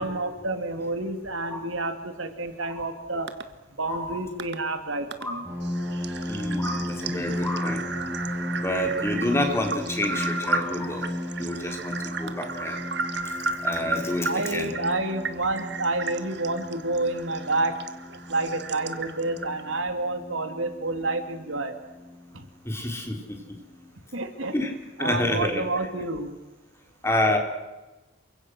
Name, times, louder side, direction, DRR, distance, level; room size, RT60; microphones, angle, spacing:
voice 1, 0.0-3.3 3.8-5.4 7.1-7.4 14.2-17.8 18.1-21.7 22.3-22.5 24.1-24.5 25.0-26.3, right 2 dB, 80° right, 7 dB, 2.9 m, -29 dB
voice 2, 1.4-1.7 2.7-2.9 3.9-4.2 5.2-5.4 6.3-7.8 8.6-11.1 11.4-12.8 13.6-14.7 22.6-23.4 24.5-24.7 25.0-25.6 27.0-27.4, left 1 dB, 15° left, 3 dB, 4.1 m, -28 dB
sound 1, 3.3-3.4 4.4-4.6 5.1-5.2 5.6-19.8, right 3 dB, 55° right, 1.6 m, -34 dB
sound 2, 5.4-22.4 23.1-23.2 23.6-23.9, left 1 dB, 15° right, 7.5 m, -35 dB
29.0 x 24.5 x 6.4 m, 1.1 s
head